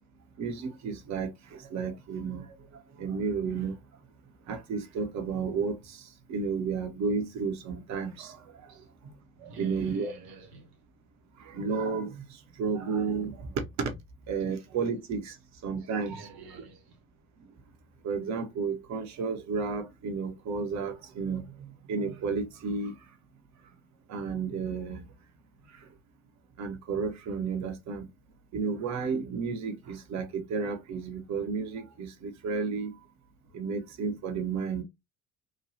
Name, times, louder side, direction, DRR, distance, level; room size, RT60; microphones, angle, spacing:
voice 1, 0.4-2.5 3.0-3.7 4.5-8.7 9.4-10.1 11.4-13.9 14.3-15.4 15.6-16.5 18.0-22.9 24.1-25.0 26.6-28.1 28.5-32.9 33.5-34.8, right 5 dB, 45° right, 0.8 m, -32 dB
voice 2, 9.3-10.8 14.4-14.6 15.8-17.0, right 3 dB, 65° right, 1.3 m, -51 dB
3.0 x 2.2 x 2.7 m
figure-of-eight pair, 55°, 41 cm